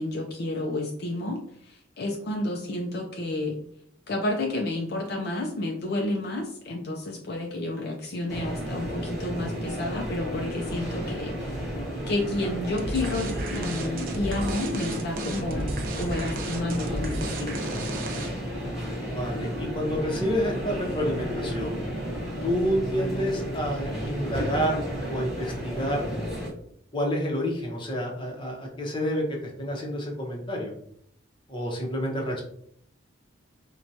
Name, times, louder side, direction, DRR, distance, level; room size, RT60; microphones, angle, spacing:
voice 1, 0.0-3.6 4.1-11.7 12.1-15.7 16.0-17.8, left 2 dB, 55° left, 1 dB, 0.4 m, -31 dB
sound 1, 8.3-26.5, equal, ahead, 1.2 m, -33 dB
sound 2, 12.8-18.5, right 1 dB, 45° right, 0.5 m, -34 dB
voice 2, 19.0-21.8 22.4-26.1 26.9-30.7 31.5-32.4, equal, 25° left, 0 dB, 0.7 m, -29 dB
4.4 x 2.2 x 2.6 m, 0.66 s
head